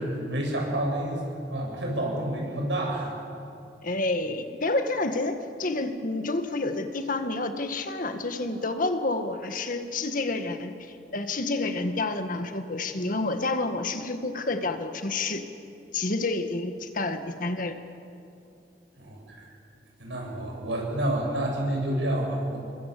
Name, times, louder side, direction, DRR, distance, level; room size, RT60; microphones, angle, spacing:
voice 1, 0.0-3.1 19.0-19.5 20.0-22.6, right 1 dB, 80° right, 0 dB, 7.9 m, -29 dB
voice 2, 3.8-15.5 15.9-17.8, left 2 dB, 50° left, 7 dB, 1.8 m, -29 dB
28.5 x 22.5 x 8.5 m, 2.7 s
head